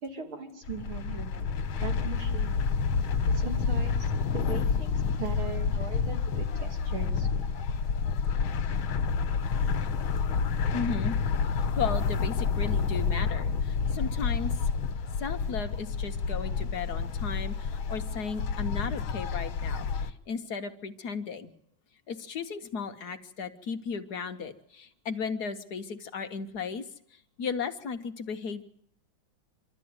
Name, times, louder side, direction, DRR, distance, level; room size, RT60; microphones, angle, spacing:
voice 1, 0.0-1.5 1.8-2.6 3.3-7.3, right 5 dB, 85° right, 3 dB, 3.9 m, -39 dB
sound 1, 0.6-20.1, left 5 dB, 80° left, 2.0 m, -29 dB
voice 2, 10.7-11.2 11.8-21.5 22.1-28.6, left 5 dB, 55° left, 8 dB, 1.4 m, -35 dB
26.0 x 13.0 x 9.5 m, 0.72 s
omnidirectional pair, 2.2 m